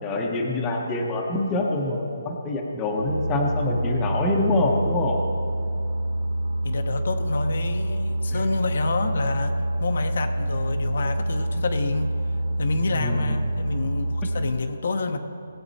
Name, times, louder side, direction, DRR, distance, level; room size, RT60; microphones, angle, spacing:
voice 1, 0.0-5.2 8.3-8.4 12.9-13.5, left 2 dB, 15° left, 0 dB, 0.9 m, -25 dB
Boat Water vehicle, 3.0-14.5, right 1 dB, 85° right, 1.2 m, -27 dB
voice 2, 6.6-12.1 12.6-15.2, left 3 dB, 55° left, 6 dB, 0.8 m, -28 dB
18.0 x 8.0 x 4.1 m, 2.7 s
hypercardioid pair, 170°, 0 cm